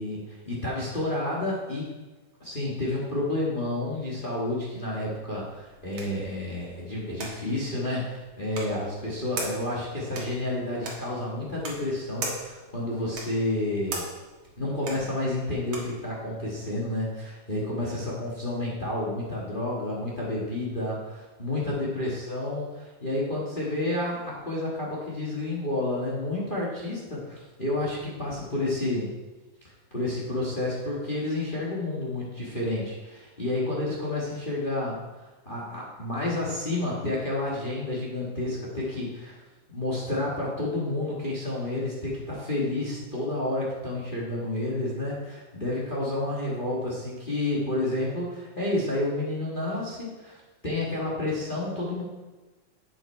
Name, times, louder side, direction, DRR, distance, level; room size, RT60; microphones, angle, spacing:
voice 1, 0.0-1.9 2.4-14.0 14.6-29.1 29.9-34.9 35.4-39.4 39.7-50.4 50.6-52.0, left 1 dB, 40° left, -5 dB, 0.7 m, -30 dB
sound 1, 5.3-16.0, right 3 dB, 50° right, 2.1 m, -40 dB
7.9 x 7.8 x 4.4 m, 1.2 s
omnidirectional pair, 3.7 m